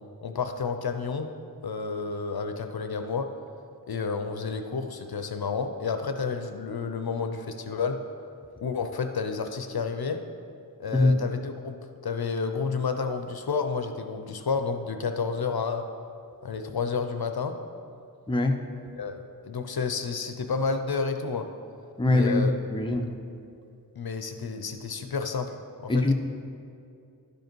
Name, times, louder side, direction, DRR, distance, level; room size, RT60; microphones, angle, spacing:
voice 1, 0.2-1.3 1.6-3.3 3.9-8.0 8.6-10.2 10.8-15.8 16.4-17.6 19.0-21.5 22.1-22.5 24.0-25.5 25.8-26.1, left 5 dB, 70° left, 7 dB, 0.6 m, -30 dB
voice 2, 18.3-18.6 22.0-23.1 25.9-26.1, left 2 dB, 15° left, 3 dB, 0.6 m, -22 dB
12.0 x 5.3 x 4.5 m, 2.5 s
wide cardioid pair, 65°, 38 cm